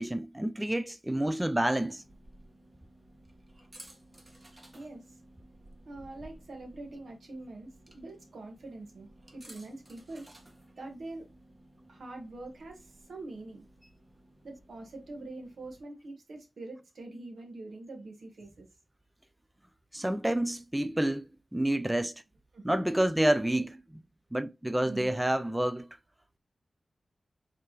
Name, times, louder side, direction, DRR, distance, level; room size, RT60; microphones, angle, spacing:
voice 1, 0.0-2.0 19.9-22.1 22.6-23.8 24.3-25.9, right 1 dB, 10° right, 0.4 m, -28 dB
sound 1, 1.9-15.8, right 1 dB, 35° right, 1.3 m, -56 dB
voice 2, 4.7-5.2 5.8-10.3 10.8-11.3 11.9-13.6 14.4-18.7 22.5-22.8 24.8-25.2, right 2 dB, 85° right, 1.5 m, -44 dB
4.7 x 3.5 x 3.0 m
wide cardioid pair, 70°, 0 cm